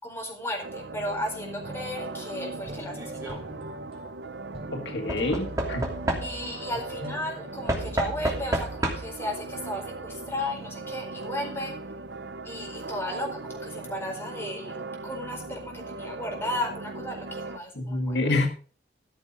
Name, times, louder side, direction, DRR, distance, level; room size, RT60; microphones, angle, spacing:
voice 1, 0.0-3.4 6.2-11.7 12.4-14.7 15.0-18.2, left 1 dB, 15° left, 0 dB, 4.5 m, -34 dB
sound 1, 0.6-17.6, right 3 dB, 90° right, 0.9 m, -39 dB
sound 2, 1.6-8.4, right 1 dB, 35° right, 3.5 m, -44 dB
Knock / Wood, 2.9-3.4 5.1-6.6 7.7-9.3 10.3-10.4 10.6-10.7, right 1 dB, 20° right, 2.8 m, -30 dB
voice 2, 4.7-5.8 7.0-7.1 17.8-18.5, left 2 dB, 80° left, 5 dB, 1.8 m, -27 dB
14.0 x 7.2 x 5.3 m, 0.41 s
head